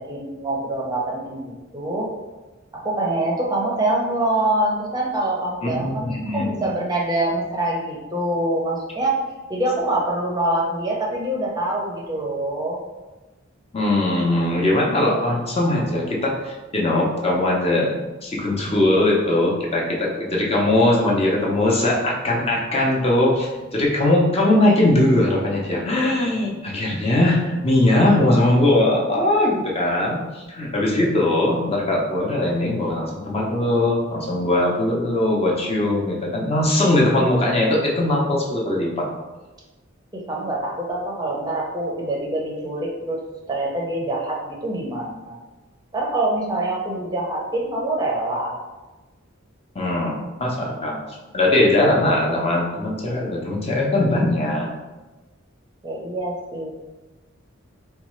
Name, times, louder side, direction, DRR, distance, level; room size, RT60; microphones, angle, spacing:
voice 1, 0.0-2.1 2.7-9.2 9.5-12.8 40.1-43.2 43.5-45.4 45.9-48.6 55.8-56.7, right 1 dB, 20° right, -2 dB, 0.5 m, -25 dB
voice 2, 5.6-6.7 13.7-39.1 49.7-51.0 51.3-54.7, left 1 dB, 30° left, -2 dB, 0.5 m, -20 dB
4.0 x 2.2 x 3.0 m, 1.2 s
head